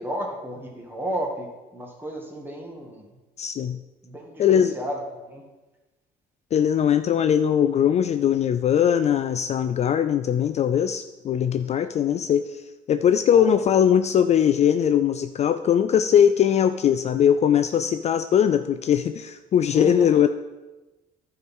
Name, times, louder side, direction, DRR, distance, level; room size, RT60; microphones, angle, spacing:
voice 1, 0.0-3.1 4.0-5.0 5.3-5.4 13.3-13.6 19.7-20.3, right 1 dB, 10° right, 1 dB, 1.9 m, -33 dB
voice 2, 3.4-3.8 4.4-4.8 6.5-20.3, left 9 dB, 40° left, 10 dB, 0.4 m, -20 dB
11.0 x 4.6 x 5.4 m, 1.1 s
cardioid pair, 110°, 17 cm